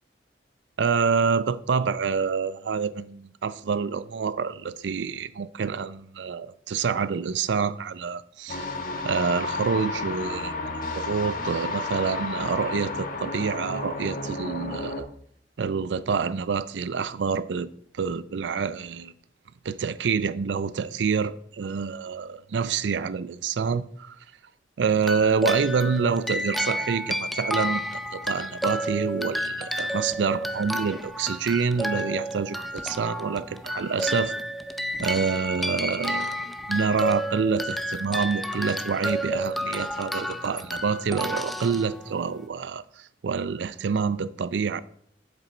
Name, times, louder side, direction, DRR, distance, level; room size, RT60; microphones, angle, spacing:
voice 1, 0.8-8.7 9.0-15.1 15.6-17.7 17.9-19.1 19.6-24.2 24.8-34.3 35.0-36.4 36.7-44.8, right 5 dB, 75° right, 0.4 m, -27 dB
sound 1, 8.5-15.0, left 3 dB, 50° left, 1.2 m, -32 dB
sound 2, 25.0-42.4, equal, ahead, 0.4 m, -31 dB
7.9 x 7.5 x 4.4 m
head